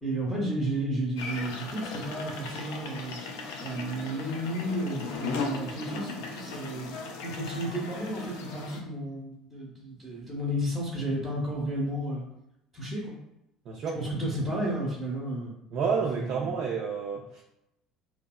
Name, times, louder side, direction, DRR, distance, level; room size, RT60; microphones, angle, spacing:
voice 1, 0.0-3.2 3.6-12.3 12.7-13.1 13.9-15.5 16.2-16.6, right 1 dB, 5° left, -6 dB, 0.7 m, -32 dB
sound 1, 1.2-8.8, left 4 dB, 60° left, 0.3 m, -37 dB
voice 2, 13.7-14.0 15.7-17.4, right 5 dB, 45° right, -2 dB, 0.3 m, -29 dB
2.7 x 2.0 x 2.2 m, 0.85 s
figure-of-eight pair, 60°, 2 cm